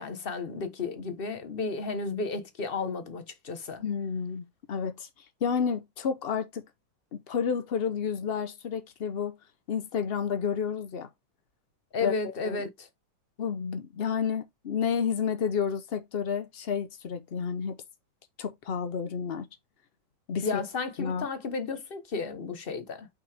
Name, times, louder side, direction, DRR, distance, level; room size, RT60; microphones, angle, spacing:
voice 1, 0.0-3.8 11.9-12.9 20.4-23.1, left 4 dB, 35° left, 1.0 m, -33 dB
voice 2, 3.8-5.1 5.4-6.6 7.1-9.3 9.7-11.1 12.0-12.6 13.4-17.8 18.4-19.5 20.3-20.6 21.0-21.3, left 6 dB, 75° left, 0.5 m, -30 dB
5.9 x 5.8 x 3.4 m
omnidirectional pair, 2.2 m